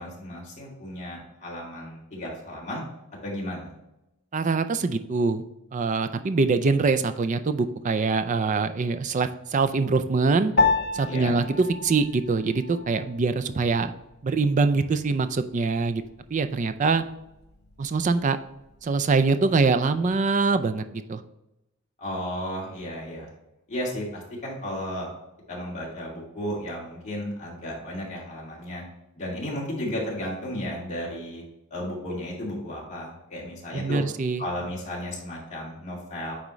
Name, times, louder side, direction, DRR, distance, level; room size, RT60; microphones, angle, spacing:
voice 1, 0.0-2.8 3.2-3.7 11.0-11.4 22.0-23.3 23.7-25.1 25.5-28.8 29.1-31.4 31.7-34.0 34.4-36.3, left 1 dB, 35° left, -5 dB, 2.3 m, -34 dB
voice 2, 4.3-5.4 5.7-10.5 10.9-13.9 14.2-16.0 16.3-17.0 17.8-18.4 18.8-21.2 33.7-34.4, right 4 dB, 35° right, 10 dB, 0.4 m, -24 dB
Piano, 10.6-20.2, left 4 dB, 50° left, 0.8 m, -32 dB
9.0 x 3.6 x 3.1 m, 0.91 s
head